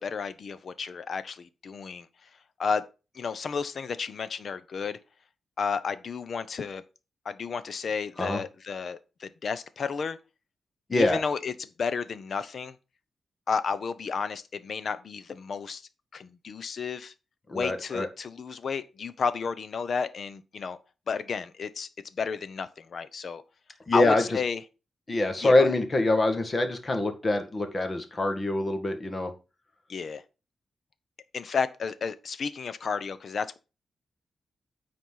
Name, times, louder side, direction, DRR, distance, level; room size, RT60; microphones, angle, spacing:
voice 1, 0.0-2.3 2.6-2.8 3.1-5.0 5.6-6.8 7.2-10.2 10.9-12.7 13.5-17.1 17.5-20.8 21.1-23.4 23.9-24.6 25.4-25.5 29.9-30.2 31.3-33.6, left 5 dB, 55° left, 0.9 m, -32 dB
voice 2, 10.9-11.2 17.5-18.1 23.9-24.2 25.1-29.3, left 2 dB, 30° left, 1.9 m, -25 dB
9.3 x 4.3 x 5.7 m
wide cardioid pair, 120°, 0 cm